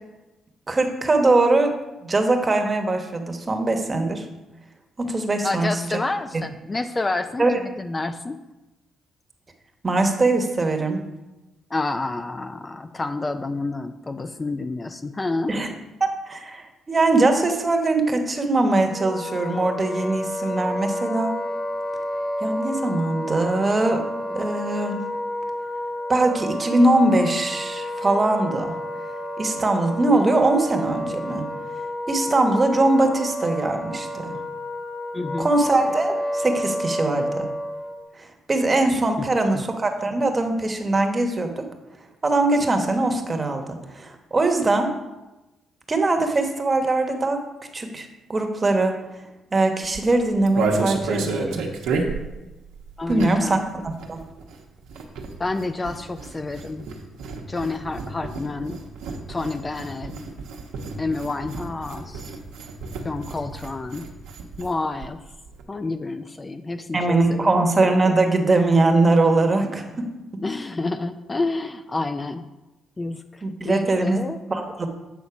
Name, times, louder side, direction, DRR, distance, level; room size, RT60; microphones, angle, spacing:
voice 1, 0.7-1.7 2.0-4.3 5.0-6.0 6.3-6.4 7.4-7.6 9.8-11.0 15.5-15.7 16.0-21.3 22.4-25.0 26.1-28.7 29.4-31.4 32.1-34.4 35.4-37.5 38.2-41.6 42.2-44.9 45.9-47.4 47.7-48.9 49.5-51.6 53.1-54.2 66.9-70.1 73.4-74.2 74.5-74.9, right 2 dB, 25° right, 5 dB, 1.2 m, -21 dB
voice 2, 5.4-7.5 7.8-8.4 11.7-15.5 35.1-35.5 39.2-39.3 39.5-39.6 53.0-53.6 55.4-56.8 57.5-58.8 59.3-60.2 61.0-62.4 63.0-64.1 64.6-65.2 65.7-67.7 70.4-72.5 73.0-74.4, left 3 dB, 25° left, 9 dB, 0.4 m, -29 dB
Wind instrument woodwind instrument, 18.9-38.0, left 1 dB, 55° left, 1.1 m, -30 dB
sound 1, 49.8-53.6 53.8-64.7 65.0-65.1 65.3-65.6, right 3 dB, 90° right, 1.0 m, -31 dB
8.2 x 4.0 x 5.9 m, 1.0 s
cardioid pair, 90°, 0 cm